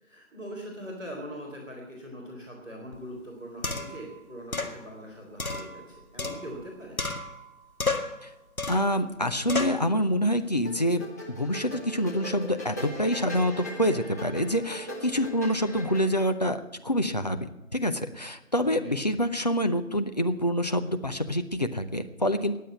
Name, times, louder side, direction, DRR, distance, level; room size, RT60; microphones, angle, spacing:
voice 1, 0.0-7.0 18.6-19.0, equal, 5° right, -11 dB, 1.4 m, -42 dB
sound 1, 2.9-3.0 3.6-4.0 4.5-4.8 5.4-6.7 7.0-7.5 7.8-8.2 8.6-8.9 9.5-9.8, left 3 dB, 85° left, 2.0 m, -31 dB
voice 2, 8.7-22.6, equal, 30° left, 7 dB, 0.7 m, -27 dB
sound 2, 10.6-16.3, left 1 dB, 10° left, 1.1 m, -40 dB
19.5 x 7.6 x 8.8 m, 0.96 s
figure-of-eight pair, 155°, 41 cm